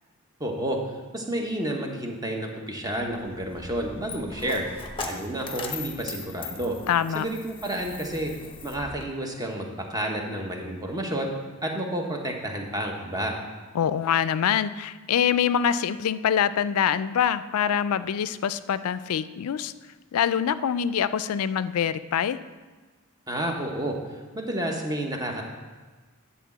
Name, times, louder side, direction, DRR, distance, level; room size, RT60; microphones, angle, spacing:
voice 1, 0.4-0.8 1.1-4.7 5.0-6.8 7.1-8.3 8.6-11.3 11.6-13.3 23.3-24.0 24.3-25.5, right 1 dB, 15° right, 1 dB, 1.1 m, -30 dB
Coin (dropping), 3.0-9.0, left 4 dB, 25° left, 0.8 m, -39 dB
voice 2, 6.9-7.2 13.7-19.7 20.1-22.4, left 8 dB, 85° left, 15 dB, 0.4 m, -25 dB
10.0 x 4.1 x 7.2 m, 1.3 s
head